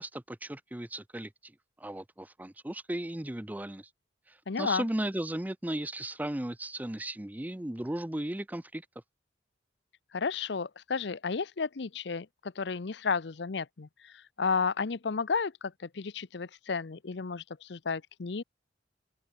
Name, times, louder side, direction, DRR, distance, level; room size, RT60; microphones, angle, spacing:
voice 1, 0.0-1.5 1.8-3.9 4.3-8.9, right 1 dB, 10° right, 0.5 m, -36 dB
voice 2, 4.5-4.9 10.1-18.4, left 5 dB, 65° left, 0.7 m, -32 dB
open air
head